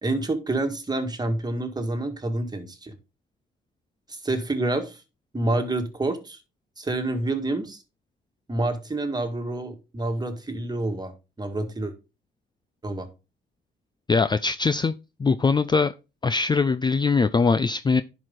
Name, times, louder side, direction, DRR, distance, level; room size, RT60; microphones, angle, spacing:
voice 1, 0.0-3.0 4.1-5.0 5.3-6.4 6.8-7.8 8.5-11.1 11.4-11.9 12.8-13.1, right 2 dB, 20° right, 1.8 m, -28 dB
voice 2, 14.1-14.9 15.2-15.9 16.2-18.0, left 4 dB, 20° left, 0.4 m, -21 dB
10.5 x 4.9 x 3.8 m
cardioid pair, 90°, 20 cm